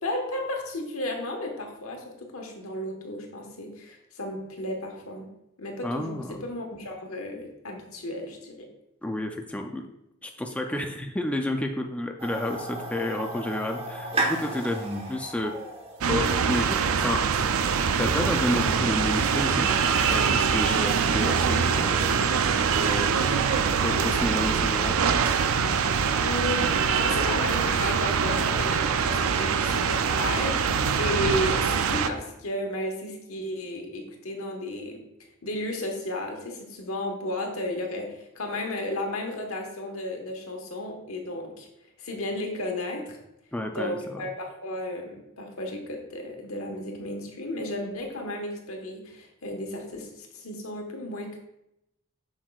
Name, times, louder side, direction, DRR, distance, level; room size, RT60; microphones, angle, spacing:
voice 1, 0.0-5.3 5.6-8.7 26.2-35.0 35.4-41.7 42.0-43.2 43.7-51.4, left 1 dB, 75° left, 2 dB, 1.3 m, -33 dB
voice 2, 5.8-6.4 9.0-9.8 10.2-14.8 15.1-15.5 16.1-17.6 18.0-19.7 20.0-22.3 22.8-23.5 23.8-25.0 43.5-44.2, left 1 dB, 5° left, 3 dB, 0.4 m, -30 dB
sound 1, 12.2-17.2, right 2 dB, 25° right, 1.1 m, -33 dB
sound 2, 16.0-32.1, right 6 dB, 75° right, 0.4 m, -24 dB
7.5 x 6.3 x 2.3 m, 0.85 s
head